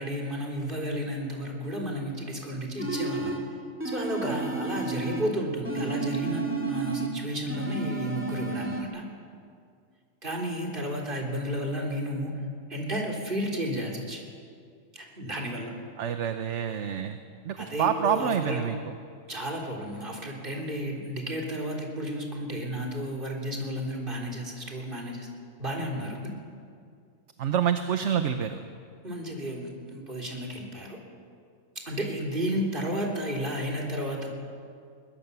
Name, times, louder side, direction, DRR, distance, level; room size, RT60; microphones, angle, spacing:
voice 1, 0.0-3.4 3.8-9.1 10.2-12.3 12.7-14.2 14.9-15.7 17.6-18.7 19.3-25.3 25.6-26.4 29.0-31.0 31.8-34.3, equal, 40° right, -1 dB, 4.0 m, -32 dB
sound 1, 2.8-3.5 3.8-5.3 5.6-7.2 7.5-8.8, right 3 dB, 10° right, 2.6 m, -31 dB
voice 2, 16.0-17.2 17.5-18.8 27.4-28.6, right 8 dB, 65° right, 8 dB, 1.1 m, -27 dB
22.0 x 21.0 x 6.9 m, 2.3 s
omnidirectional pair, 1.4 m